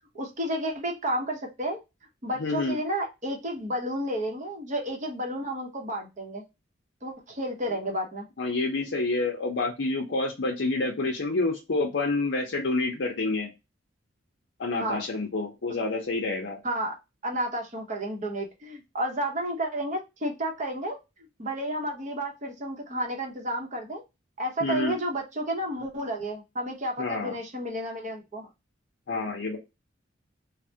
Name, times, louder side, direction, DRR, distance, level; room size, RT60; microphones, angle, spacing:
voice 1, 0.1-1.8 2.2-6.4 7.0-8.3 14.7-15.0 16.6-17.0 17.2-21.0 21.4-24.0 24.4-28.5, right 1 dB, 40° right, 2 dB, 0.8 m, -31 dB
voice 2, 2.4-2.8 8.4-13.5 14.6-16.6 24.6-24.9 27.0-27.3 29.1-29.6, left 3 dB, 60° left, 0 dB, 0.6 m, -28 dB
3.3 x 2.1 x 2.7 m, 0.24 s
head